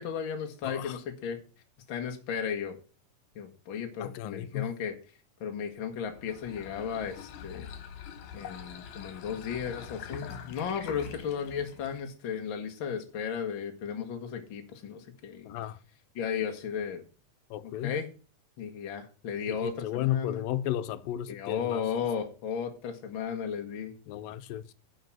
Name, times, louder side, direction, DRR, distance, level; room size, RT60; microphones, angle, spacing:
voice 1, 0.0-1.4 1.9-2.8 3.4-5.0 5.4-7.7 8.3-15.6 16.2-17.0 17.6-18.1 18.6-20.4 21.3-23.9, left 7 dB, 45° left, 1.7 m, -35 dB
voice 2, 0.6-1.0 4.0-4.7 15.5-15.8 17.5-18.0 19.5-21.8 24.1-24.6, left 12 dB, 90° left, 2.4 m, -34 dB
sound 1, 6.1-12.1, left 7 dB, 75° left, 2.8 m, -44 dB
9.3 x 5.7 x 6.2 m
omnidirectional pair, 3.9 m